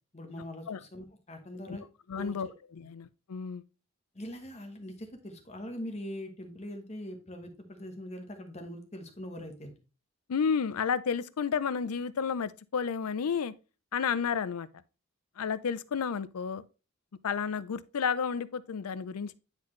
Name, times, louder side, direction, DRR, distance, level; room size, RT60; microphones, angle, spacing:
voice 1, 0.1-1.9 2.1-2.3 4.1-9.7, left 1 dB, 30° left, 1.1 m, -42 dB
voice 2, 2.1-2.5 2.7-3.6 10.3-13.5 13.9-14.7 15.4-16.6 17.2-19.3, left 6 dB, 90° left, 0.5 m, -31 dB
9.7 x 4.1 x 3.1 m
head